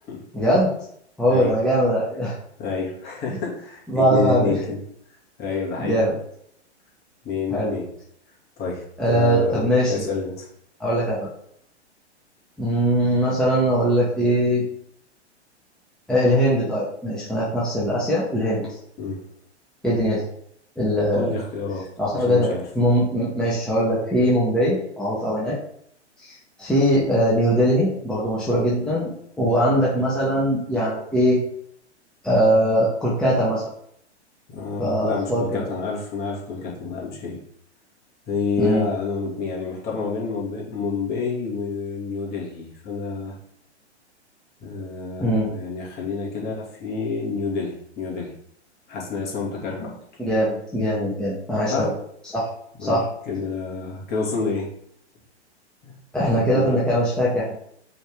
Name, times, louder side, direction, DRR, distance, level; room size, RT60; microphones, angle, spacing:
voice 1, 0.3-0.7 1.2-2.3 3.9-4.6 5.8-6.1 7.5-7.8 9.0-10.0 10.8-11.3 12.6-14.6 16.1-18.6 19.8-20.3 20.8-21.3 22.0-25.6 26.2-29.1 29.4-31.4 32.2-33.6 34.8-35.7 38.6-38.9 45.2-45.5 50.2-51.9 52.3-52.4 52.8-53.0 56.1-57.5, equal, ahead, -8 dB, 1.8 m, -21 dB
voice 2, 2.6-4.8 5.4-6.0 7.2-7.9 8.6-10.5 19.0-19.2 21.1-21.9 22.3-22.6 34.5-37.4 38.3-43.3 44.6-48.3 48.9-49.9 51.7-51.9 52.8-54.7 55.8-55.9 56.3-56.8, left 4 dB, 30° left, -4 dB, 2.8 m, -28 dB
5.6 x 5.4 x 3.8 m, 0.70 s
hypercardioid pair, 115°, 35 cm